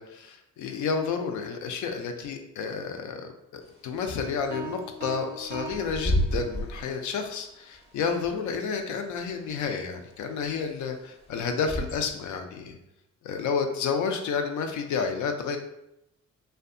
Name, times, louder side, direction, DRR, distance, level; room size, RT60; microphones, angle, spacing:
voice 1, 0.0-12.8 13.2-15.6, left 5 dB, 70° left, 5 dB, 0.5 m, -30 dB
Bird / Wind, 3.6-12.3, equal, 20° left, 0.5 m, -34 dB
sound 1, 4.5-6.9, right 4 dB, 35° right, 0.4 m, -40 dB
2.6 x 2.2 x 2.5 m, 0.84 s
cardioid pair, 90°, 30 cm